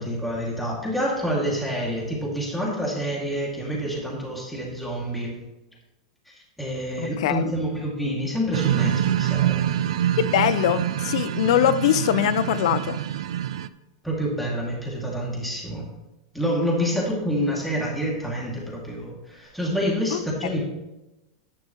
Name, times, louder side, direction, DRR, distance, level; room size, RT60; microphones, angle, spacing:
voice 1, 0.0-5.3 6.6-9.7 14.0-15.9 16.3-20.6, equal, ahead, -3 dB, 2.3 m, -27 dB
voice 2, 7.0-7.5 10.2-13.0 20.1-20.2, left 10 dB, 65° left, 14 dB, 0.6 m, -22 dB
sound 1, 8.5-13.7, right 11 dB, 75° right, 0.5 m, -25 dB
11.0 x 9.7 x 3.1 m, 0.99 s
supercardioid pair, 155°, 3 cm